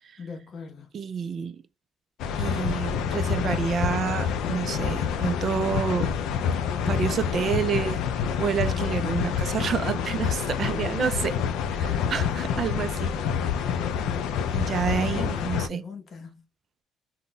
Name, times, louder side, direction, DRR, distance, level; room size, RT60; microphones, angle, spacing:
voice 1, 0.2-0.9 11.0-11.3 15.1-16.4, left 5 dB, 40° left, 0.6 m, -39 dB
voice 2, 0.9-1.6 2.4-6.1 6.4-6.6 6.8-11.3 11.7-13.1 14.5-15.8, right 7 dB, 45° right, 0.3 m, -29 dB
sound 1, 2.2-15.7, left 7 dB, 80° left, 0.3 m, -27 dB
2.1 x 2.0 x 3.8 m
cardioid pair, 135°, 0 cm